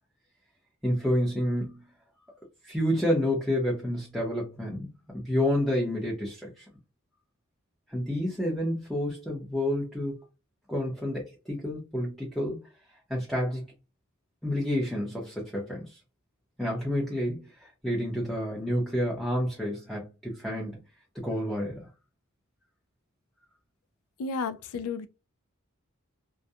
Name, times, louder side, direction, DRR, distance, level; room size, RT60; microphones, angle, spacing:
voice 1, 0.8-1.8 2.6-4.9 5.1-6.6 7.9-10.2 10.7-12.6 13.1-13.6 14.4-15.9 16.6-20.7 21.2-21.9, equal, ahead, 0.7 m, -29 dB
voice 2, 24.2-25.1, left 4 dB, 75° left, 0.4 m, -32 dB
2.4 x 2.1 x 2.7 m
head